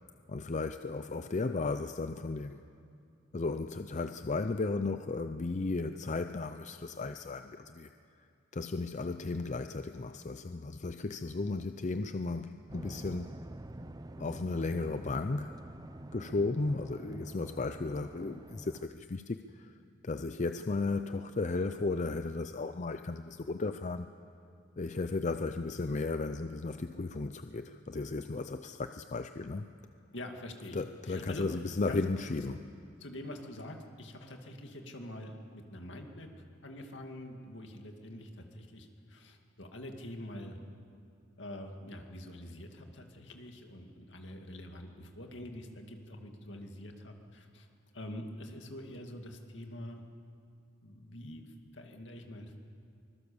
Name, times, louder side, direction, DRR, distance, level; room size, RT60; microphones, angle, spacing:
voice 1, 0.3-2.6 3.3-7.9 8.5-13.3 14.2-15.6 16.1-19.7 20.0-24.1 24.8-29.7 30.7-32.7, left 3 dB, 40° left, 9 dB, 0.5 m, -35 dB
sound 1, 12.7-18.9, right 1 dB, 20° right, 0.6 m, -47 dB
voice 2, 30.1-31.5 31.9-32.0 33.0-36.3 36.6-40.6 41.4-47.7 47.9-50.0 50.8-51.5 51.7-52.6, left 1 dB, 70° left, 3 dB, 2.3 m, -45 dB
24.5 x 21.0 x 7.1 m, 2.4 s
head